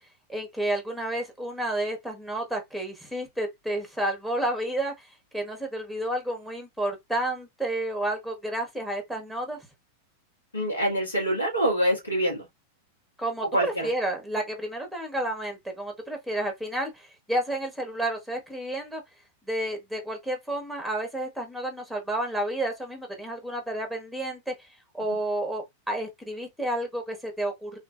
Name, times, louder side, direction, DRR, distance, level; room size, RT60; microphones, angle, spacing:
voice 1, 0.3-4.9 5.3-9.6 13.2-19.0 19.5-24.5 24.9-27.8, right 1 dB, ahead, 1.1 m, -31 dB
voice 2, 10.5-12.4 13.5-13.9, right 1 dB, 80° left, 1.7 m, -25 dB
3.3 x 2.5 x 2.4 m
figure-of-eight pair, 90°, 0 cm